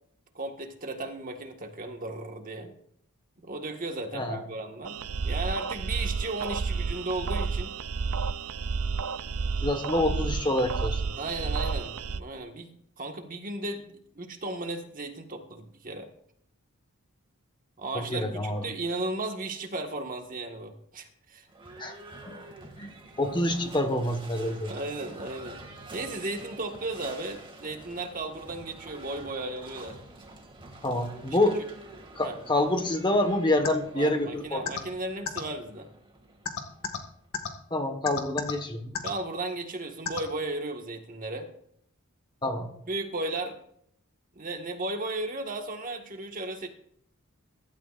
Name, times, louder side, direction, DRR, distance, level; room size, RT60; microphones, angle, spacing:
voice 1, 0.3-2.7 3.4-7.7 11.2-13.9 14.1-16.1 17.8-21.5 24.7-25.6 25.9-30.0 32.2-32.3 33.9-35.9 39.0-41.5 42.9-43.6 44.3-46.7, right 2 dB, 40° right, 4 dB, 1.7 m, -35 dB
sound 1, 4.8-12.2, right 4 dB, 75° right, 0.6 m, -31 dB
voice 2, 9.6-11.0 17.9-18.6 21.8-22.0 22.3-22.9 23.2-24.7 30.8-31.6 32.1-34.7 37.7-38.9 42.4-42.7, left 1 dB, 20° left, 6 dB, 1.5 m, -27 dB
Livestock farm animals working animals / Bell, 21.5-37.4, right 2 dB, 25° right, 2.3 m, -47 dB
sound 2, 33.6-33.7 34.6-34.8 35.2-35.4 36.4-37.0 37.3-37.5 38.0-38.5 38.9-39.1 40.0-40.2, left 7 dB, 70° left, 1.8 m, -30 dB
22.5 x 13.0 x 2.6 m, 0.69 s
head